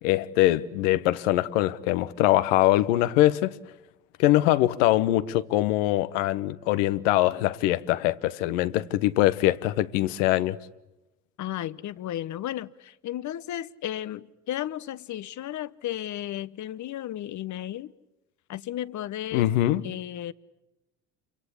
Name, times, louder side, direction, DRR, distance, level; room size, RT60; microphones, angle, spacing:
voice 1, 0.0-3.6 4.2-10.6 19.3-19.8, left 15 dB, 70° left, 1.2 m, -23 dB
voice 2, 11.4-17.9 18.5-19.5 19.8-20.3, left 12 dB, 50° left, 1.1 m, -34 dB
29.0 x 24.0 x 8.6 m
hypercardioid pair, 60°, 39 cm